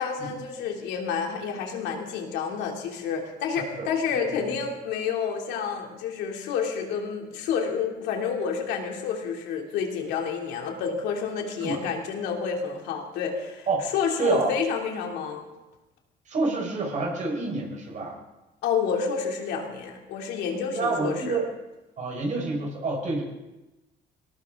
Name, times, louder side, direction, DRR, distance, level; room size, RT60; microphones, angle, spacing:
voice 1, 0.0-13.7 13.9-15.4 18.6-21.4, left 6 dB, 85° left, 1 dB, 3.0 m, -29 dB
voice 2, 3.8-4.5 11.6-11.8 13.7-13.9 14.2-14.5 16.3-18.2 20.7-21.5 22.0-23.2, right 3 dB, 45° right, 0 dB, 4.8 m, -28 dB
19.5 x 18.5 x 3.8 m, 1.0 s
cardioid pair, 110°, 17 cm